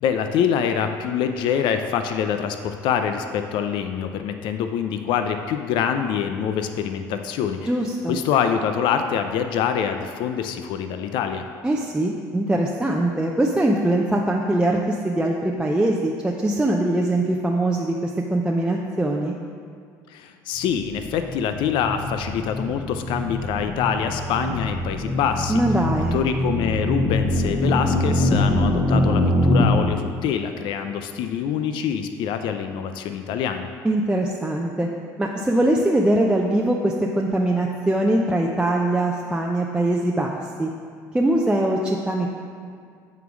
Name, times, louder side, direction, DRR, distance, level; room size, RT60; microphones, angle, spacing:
voice 1, 0.0-7.7 8.1-11.4 20.1-25.6 26.1-33.7, left 8 dB, 65° left, 7 dB, 0.5 m, -25 dB
voice 2, 7.7-8.2 11.6-19.3 25.5-26.2 33.8-34.9 35.2-40.7 41.1-42.3, right 1 dB, 10° right, -1 dB, 0.6 m, -22 dB
sound 1, 20.6-29.7, left 1 dB, 15° left, 1.2 m, -23 dB
9.1 x 3.8 x 6.1 m, 2.2 s
supercardioid pair, 85°, 9 cm